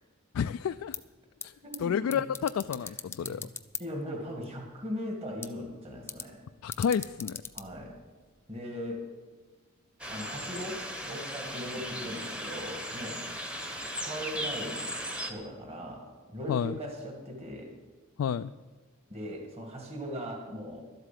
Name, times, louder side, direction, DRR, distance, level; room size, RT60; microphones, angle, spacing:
voice 1, 0.3-1.0 1.4-1.5 1.8-3.4 6.6-7.4 16.5-16.8 18.2-18.5, left 7 dB, 75° left, 10 dB, 0.3 m, -30 dB
sound 1, 0.7-8.6, left 5 dB, 10° left, 0.5 m, -44 dB
voice 2, 1.6-2.2 3.2-3.5 3.8-6.4 7.5-8.0 8.5-9.1 10.1-13.2 14.0-14.8 15.3-17.7 19.1-20.8, equal, 30° right, 1 dB, 2.2 m, -39 dB
sound 2, 10.0-15.3, equal, 5° right, 1.0 m, -37 dB
12.5 x 8.0 x 7.6 m, 1.3 s
head